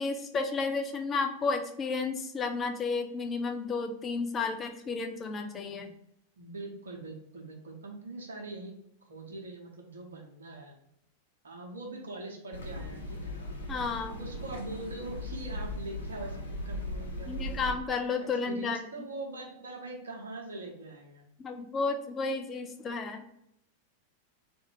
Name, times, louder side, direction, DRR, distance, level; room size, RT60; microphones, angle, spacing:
voice 1, 0.0-5.9 13.7-14.2 17.3-18.8 21.4-23.2, left 4 dB, 25° left, 6 dB, 0.5 m, -32 dB
voice 2, 6.4-8.7 9.1-10.7 11.4-13.3 14.1-17.8 18.5-21.3, right 2 dB, 70° right, 1 dB, 0.9 m, -42 dB
sound 1, 12.5-17.7, left 1 dB, 70° left, 0.7 m, -38 dB
3.7 x 2.6 x 4.7 m, 0.75 s
figure-of-eight pair, 90°, 0 cm